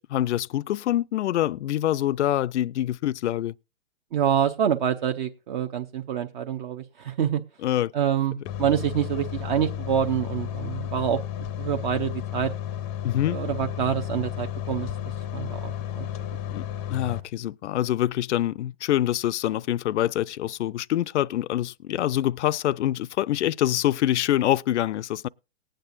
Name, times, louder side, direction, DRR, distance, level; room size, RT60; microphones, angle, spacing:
voice 1, 0.0-3.5 7.6-7.9 13.0-13.4 16.5-16.6 16.9-25.3, left 12 dB, 65° left, 0.5 m, -25 dB
voice 2, 4.1-7.4 7.9-12.5 13.3-14.9 15.3-16.1, right 9 dB, 40° right, 0.7 m, -26 dB
sound 1, 8.5-17.2, left 11 dB, 20° left, 0.6 m, -33 dB
19.5 x 9.0 x 2.6 m
hypercardioid pair, 140°, 38 cm